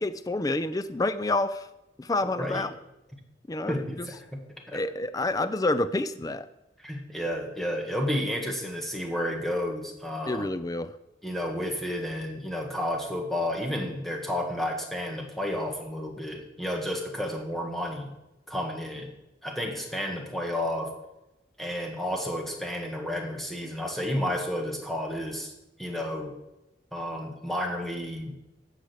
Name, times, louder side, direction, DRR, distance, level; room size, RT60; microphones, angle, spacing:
voice 1, 0.0-1.7 2.0-2.7 3.5-4.1 4.7-6.5 10.3-10.9, left 2 dB, 20° left, 12 dB, 0.4 m, -28 dB
voice 2, 2.2-2.7 3.7-4.4 4.7-4.8 6.8-10.5 11.2-18.1 18.5-19.1 19.4-20.9 21.6-25.5 25.8-26.3 26.9-28.3, equal, ahead, 1 dB, 1.6 m, -31 dB
13.0 x 5.0 x 7.9 m, 0.94 s
head